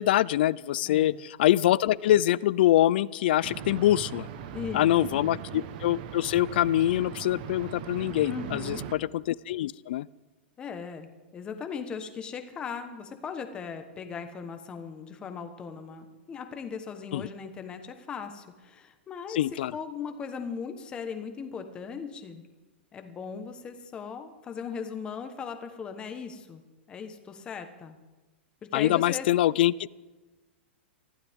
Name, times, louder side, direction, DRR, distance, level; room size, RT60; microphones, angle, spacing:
voice 1, 0.0-4.3 4.7-10.1 17.1-17.3 19.3-19.7 28.7-30.0, left 13 dB, 55° left, 22 dB, 0.4 m, -24 dB
voice 2, 0.8-1.2 4.5-5.2 8.3-8.8 10.6-19.4 19.7-22.4 22.9-26.6 26.9-28.0 28.6-29.3, left 6 dB, 15° left, 7 dB, 1.2 m, -38 dB
sound 1, 3.4-9.0, right 8 dB, 45° right, 1.2 m, -39 dB
24.0 x 15.0 x 3.6 m, 1.2 s
supercardioid pair, 170°, 6 cm